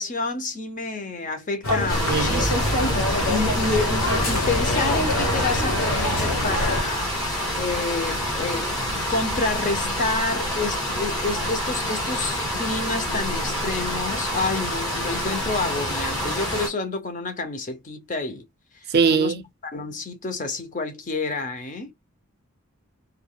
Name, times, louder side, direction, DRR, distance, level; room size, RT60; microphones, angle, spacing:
voice 1, 0.0-7.1 7.5-18.5 19.1-19.3 19.6-21.9, left 3 dB, 35° left, 0.6 m, -29 dB
sound 1, 1.6-6.8, left 1 dB, 70° left, 1.2 m, -25 dB
sound 2, 1.9-16.7, equal, 20° left, 1.5 m, -27 dB
voice 2, 2.0-2.5 18.9-19.4, right 5 dB, 45° right, 0.4 m, -21 dB
3.3 x 2.2 x 2.2 m
head